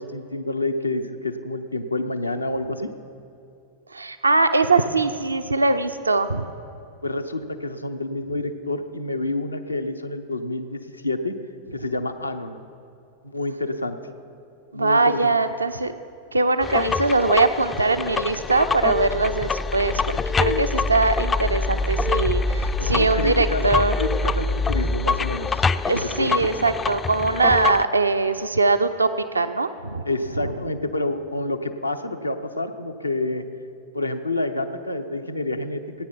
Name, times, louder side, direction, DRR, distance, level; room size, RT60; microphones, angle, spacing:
voice 1, 0.0-2.9 7.0-11.4 11.7-12.6 13.2-14.0 14.7-15.3 20.4-20.7 22.8-23.6 24.0-25.6 25.9-26.5 30.0-33.4 33.9-36.1, left 2 dB, 85° left, 8 dB, 0.7 m, -28 dB
voice 2, 3.9-6.5 14.7-15.9 16.3-23.9 25.9-29.1 29.3-30.0, right 3 dB, 80° right, 9 dB, 0.5 m, -21 dB
sound 1, 16.6-27.8, left 4 dB, 20° left, 0.3 m, -25 dB
16.0 x 9.3 x 5.6 m, 2.7 s
figure-of-eight pair, 90°, 0 cm